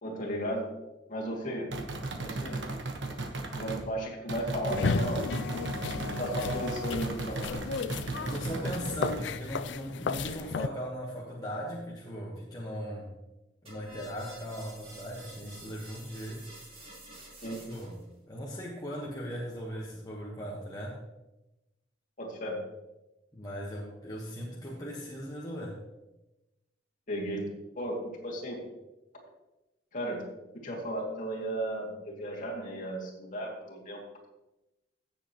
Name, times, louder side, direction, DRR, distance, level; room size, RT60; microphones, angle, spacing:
voice 1, 0.0-0.7 1.1-1.7 2.2-2.6 3.5-7.7 17.4-17.6 22.2-22.6 27.1-27.5 27.8-28.6 29.9-30.2 30.5-34.0, right 1 dB, 45° left, -2 dB, 2.5 m, -35 dB
sound 1, 1.7-3.9 4.3-9.3, right 2 dB, 80° right, 1.3 m, -36 dB
sound 2, 4.7-10.7, left 4 dB, 75° left, 0.4 m, -34 dB
voice 2, 8.2-13.1 13.6-16.5 17.7-18.0 18.3-21.0 23.3-25.8, equal, 20° left, -4 dB, 1.3 m, -38 dB
sound 3, 13.7-18.1, right 1 dB, 35° right, 3.8 m, -49 dB
16.0 x 7.3 x 3.0 m, 0.99 s
head